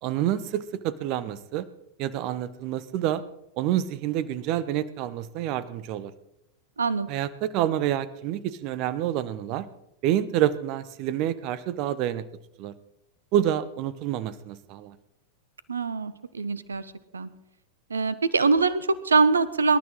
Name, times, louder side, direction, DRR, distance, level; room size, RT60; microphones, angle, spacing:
voice 1, 0.0-1.7 2.0-3.2 3.6-6.1 7.1-9.7 10.0-12.3 12.6-12.7 13.3-14.9, right 11 dB, 40° right, 16 dB, 0.9 m, -28 dB
voice 2, 6.8-7.1 15.7-16.9 17.1-17.3 17.9-19.8, right 4 dB, 75° right, 16 dB, 1.0 m, -23 dB
25.0 x 12.0 x 3.8 m, 0.90 s
figure-of-eight pair, 90°, 0 cm